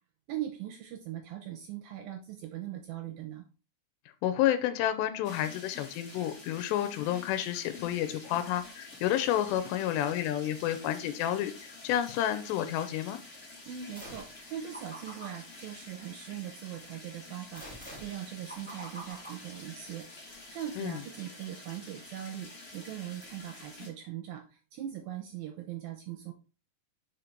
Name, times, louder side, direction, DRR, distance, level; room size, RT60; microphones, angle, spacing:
voice 1, 0.3-3.5 13.7-26.3, right 11 dB, 75° right, 4 dB, 2.3 m, -40 dB
voice 2, 4.2-11.5 11.8-13.2 20.8-21.0, left 11 dB, 85° left, 10 dB, 2.8 m, -30 dB
sound 1, 5.2-23.9, left 3 dB, 65° left, 0.8 m, -49 dB
sound 2, 14.0-14.4 14.7-16.5 17.6-20.2, right 1 dB, 5° left, 0.8 m, -48 dB
5.6 x 5.1 x 4.5 m, 0.33 s
omnidirectional pair, 4.9 m